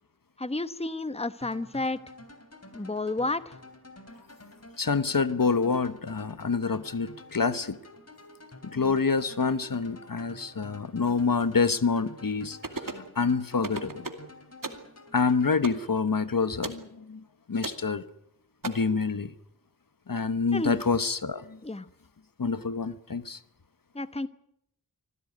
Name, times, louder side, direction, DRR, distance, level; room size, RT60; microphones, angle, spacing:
voice 1, 0.4-2.0 2.7-3.6 20.5-20.8 21.6-21.9 23.9-24.3, left 2 dB, 15° left, 13 dB, 1.0 m, -31 dB
sound 1, 1.4-16.5, left 2 dB, 40° left, 3.3 m, -50 dB
voice 2, 4.8-7.8 8.7-14.1 15.1-17.2 17.5-18.0 18.6-19.3 20.1-21.6 22.4-23.4, left 4 dB, 60° left, 13 dB, 1.1 m, -27 dB
sound 2, 12.6-13.1 13.6-14.3 14.6-14.9 15.6-15.9 16.6-16.8 17.6-17.8 18.6-18.7, right 3 dB, 60° right, 2.4 m, -35 dB
25.5 x 15.5 x 9.4 m, 0.78 s
wide cardioid pair, 55°, 37 cm